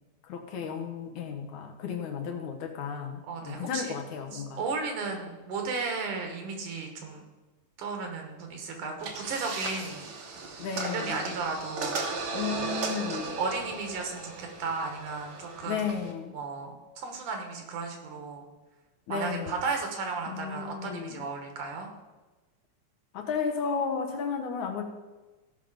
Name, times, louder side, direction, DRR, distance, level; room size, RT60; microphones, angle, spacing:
voice 1, 0.3-4.6 10.6-11.4 12.3-13.4 15.6-16.4 19.1-19.5 20.3-21.3 23.1-24.8, left 6 dB, 70° left, 3 dB, 2.5 m, -33 dB
voice 2, 3.3-4.0 4.3-7.2 7.8-10.1 10.9-12.7 13.4-15.9 16.3-18.5 19.1-21.9, right 4 dB, 80° right, 3 dB, 3.1 m, -34 dB
sound 1, 9.0-16.1, right 4 dB, 55° right, 1.5 m, -36 dB
15.5 x 5.8 x 5.1 m, 1.2 s
omnidirectional pair, 3.6 m